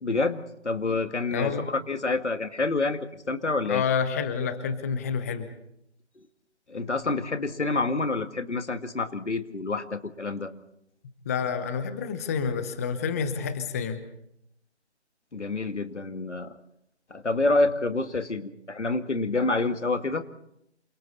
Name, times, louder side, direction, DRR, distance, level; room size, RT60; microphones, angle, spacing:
voice 1, 0.0-3.8 6.2-6.3 6.7-10.5 15.3-16.6 17.1-20.2, left 3 dB, 85° left, 8 dB, 2.1 m, -28 dB
voice 2, 1.3-1.7 3.7-5.5 11.2-14.0, left 6 dB, 15° left, 10 dB, 0.9 m, -28 dB
28.0 x 25.0 x 4.2 m, 0.76 s
figure-of-eight pair, 155°, 34 cm